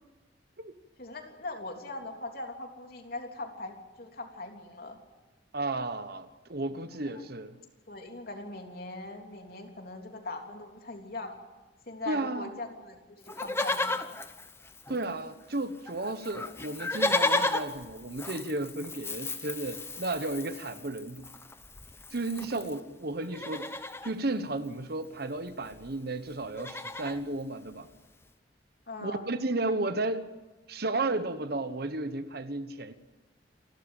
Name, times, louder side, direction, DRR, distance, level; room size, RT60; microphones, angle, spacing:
voice 1, 1.0-5.0 6.7-7.2 7.9-11.4 11.9-14.2 22.3-22.7 28.9-29.3, left 2 dB, 55° left, 3.4 m, -41 dB
voice 2, 5.5-7.6 12.1-12.5 14.9-21.3 22.1-23.7 24.0-27.9 29.0-30.3 30.7-32.9, right 2 dB, 60° right, 1.2 m, -33 dB
Livestock farm animals working animals, 13.3-15.3 15.5-15.6 15.9-22.8 23.2-24.1 25.4-25.5 25.6-25.9 26.3-27.2 27.8-27.9, left 2 dB, 15° left, 1.0 m, -34 dB
28.5 x 12.5 x 9.0 m
head